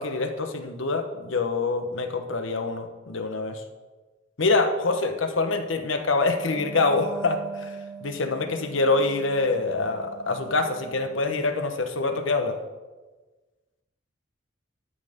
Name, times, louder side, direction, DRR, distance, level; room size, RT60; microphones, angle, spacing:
voice 1, 0.0-3.6 4.4-7.7 8.0-12.6, left 3 dB, 75° left, 7 dB, 1.1 m, -25 dB
Wind instrument woodwind instrument, 6.5-11.6, right 4 dB, 5° left, 1.0 m, -41 dB
12.5 x 6.5 x 5.1 m, 1.2 s
head